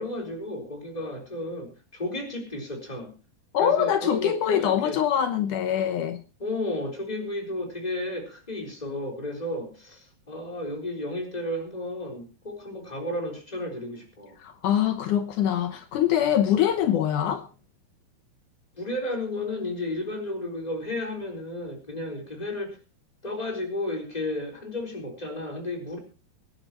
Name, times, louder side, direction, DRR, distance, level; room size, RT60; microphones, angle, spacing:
voice 1, 0.0-3.1 3.6-5.0 6.4-14.4 18.8-22.8 23.2-26.0, left 1 dB, 10° left, 3.5 m, -33 dB
voice 2, 3.5-6.2 14.4-17.5, left 10 dB, 85° left, 1.8 m, -24 dB
24.0 x 11.0 x 3.0 m
omnidirectional pair, 5.0 m